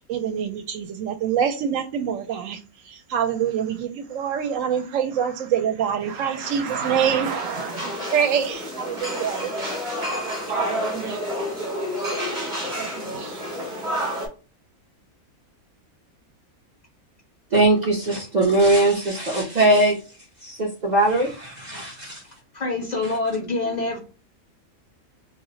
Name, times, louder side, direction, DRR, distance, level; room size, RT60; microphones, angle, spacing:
voice 1, 0.1-2.6 2.9-9.5 10.5-11.2 12.6-13.4, right 8 dB, 70° right, 6 dB, 0.9 m, -26 dB
sound 1, 6.1-14.3, equal, 25° right, 0.9 m, -30 dB
voice 2, 17.5-20.0 20.4-22.2, right 2 dB, 55° right, -2 dB, 0.5 m, -20 dB
voice 3, 22.5-24.0, left 3 dB, 75° left, 2 dB, 0.4 m, -26 dB
2.4 x 2.1 x 3.7 m, 0.34 s
omnidirectional pair, 1.5 m